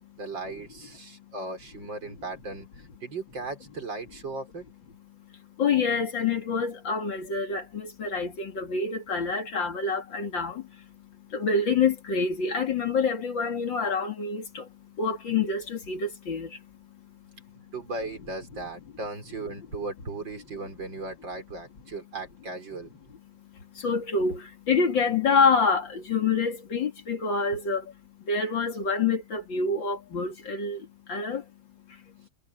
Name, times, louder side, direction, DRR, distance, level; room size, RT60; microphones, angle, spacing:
voice 1, 0.2-4.6 17.6-22.9, right 3 dB, 65° right, 5.6 m, -37 dB
voice 2, 5.1-17.7 23.3-31.5 31.9-32.1, left 4 dB, 70° left, 3.1 m, -27 dB
omnidirectional pair, 2.2 m